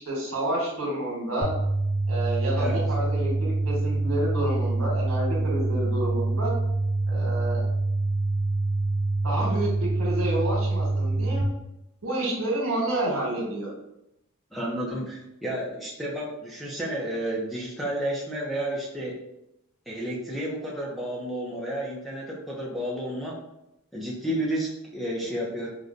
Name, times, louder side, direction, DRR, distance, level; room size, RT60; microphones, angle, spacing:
voice 1, 0.0-1.5 2.1-6.5 7.1-7.7 9.2-11.5 12.0-13.7, right 1 dB, 80° right, -3 dB, 1.2 m, -29 dB
sound 1, 1.4-11.4, right 2 dB, 15° right, 1.4 m, -26 dB
voice 2, 14.5-19.2 19.9-23.4 23.9-25.7, right 1 dB, ahead, -4 dB, 0.5 m, -31 dB
5.1 x 2.2 x 2.5 m, 0.86 s
head